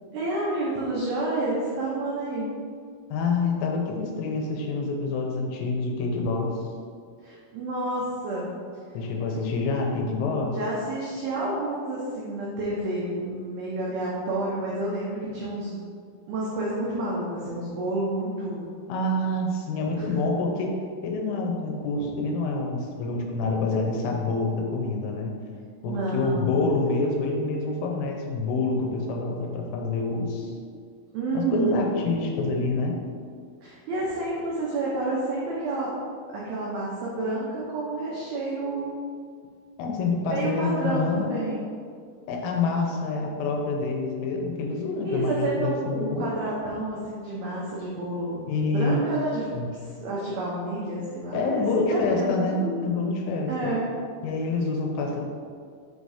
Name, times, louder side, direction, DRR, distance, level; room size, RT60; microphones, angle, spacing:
voice 1, 0.1-2.5 7.2-8.5 10.5-15.8 16.3-18.7 20.0-20.1 22.0-22.1 25.9-26.6 31.1-32.0 33.6-35.9 36.3-38.9 40.3-41.7 45.0-48.4 48.7-49.5 49.8-52.9 53.5-53.8, right 2 dB, 90° right, -6 dB, 2.1 m, -30 dB
voice 2, 3.1-6.7 8.9-10.5 18.9-20.7 21.0-25.3 25.8-30.6 31.3-33.0 39.8-41.4 42.3-46.3 48.5-49.1 49.5-49.7 51.3-53.7 54.2-55.2, left 3 dB, 85° left, 1 dB, 3.3 m, -27 dB
7.3 x 2.7 x 4.8 m, 2.1 s
omnidirectional pair, 5.6 m